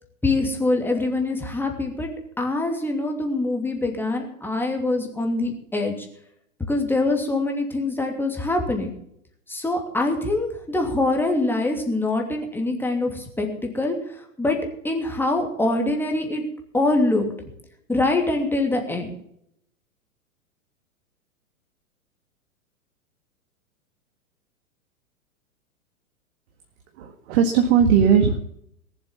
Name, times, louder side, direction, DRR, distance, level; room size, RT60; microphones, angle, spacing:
voice 1, 0.2-2.1 2.4-6.0 6.7-8.9 9.5-13.9 14.4-14.6 14.8-16.4 16.7-17.3 17.9-19.1, left 2 dB, 5° left, 2 dB, 2.8 m, -24 dB
voice 2, 27.0-28.4, right 7 dB, 50° right, 5 dB, 1.8 m, -18 dB
19.5 x 7.5 x 7.3 m, 0.72 s
hypercardioid pair, 110°, 42 cm